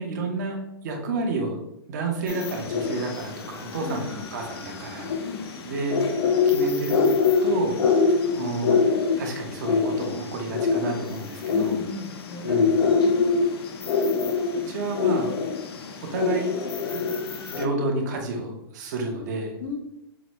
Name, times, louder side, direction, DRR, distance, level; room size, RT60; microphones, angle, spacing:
voice 1, 0.0-1.6 1.9-5.3 5.5-7.0 7.4-7.8 8.3-8.8 9.2-11.8 12.4-12.7 14.7-15.3 16.0-16.5 16.9-17.1 17.4-19.6, right 3 dB, 45° right, 1 dB, 0.9 m, -30 dB
sound 1, 2.3-17.7, left 5 dB, 85° left, 0.6 m, -25 dB
voice 2, 3.8-4.2 5.2-5.4 11.5-13.5 19.6-19.8, left 4 dB, 20° left, 1 dB, 0.5 m, -36 dB
6.0 x 2.1 x 3.0 m, 0.82 s
hypercardioid pair, 170°, 13 cm